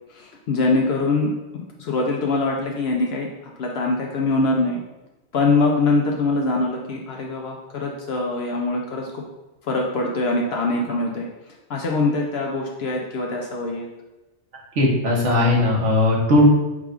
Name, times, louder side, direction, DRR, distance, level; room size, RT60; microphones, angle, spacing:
voice 1, 0.1-4.8 5.3-9.2 9.7-11.3 11.7-13.9, left 3 dB, 65° left, 0 dB, 0.8 m, -23 dB
voice 2, 14.8-16.4, left 1 dB, 90° right, -2 dB, 1.4 m, -18 dB
4.7 x 2.3 x 4.9 m, 1.0 s
omnidirectional pair, 1.2 m